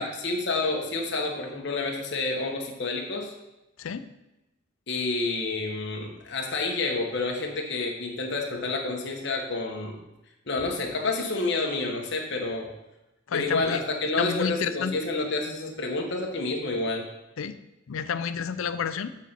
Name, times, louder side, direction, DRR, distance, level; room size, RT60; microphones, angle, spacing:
voice 1, 0.0-3.3 4.9-10.0 10.5-12.7 13.3-17.1, left 3 dB, 55° left, 1 dB, 1.1 m, -29 dB
voice 2, 3.8-4.1 13.3-13.8 14.2-14.9 17.4-17.6 17.9-19.2, left 7 dB, 75° left, 12 dB, 0.4 m, -30 dB
7.3 x 4.1 x 5.8 m, 0.94 s
head